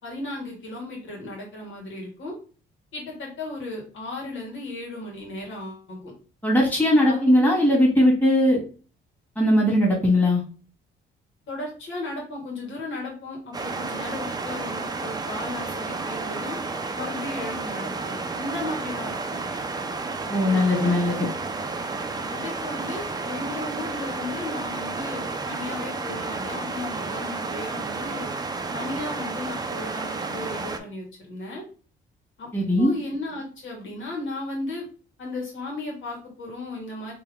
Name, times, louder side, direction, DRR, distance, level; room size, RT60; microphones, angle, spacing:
voice 1, 0.0-2.3 2.9-6.1 7.1-7.4 11.5-16.6 16.9-19.4 20.4-21.0 22.3-28.3 28.7-31.6 32.4-32.5 32.7-34.8 35.2-37.1, left 2 dB, 75° left, -1 dB, 2.0 m, -35 dB
voice 2, 6.4-8.6 9.4-10.4 20.3-21.3 32.5-32.9, left 1 dB, 10° left, -5 dB, 1.9 m, -19 dB
sound 1, 13.5-30.8, right 3 dB, 20° right, 0.6 m, -31 dB
3.4 x 3.0 x 3.6 m, 0.38 s
cardioid pair, 90°, 20 cm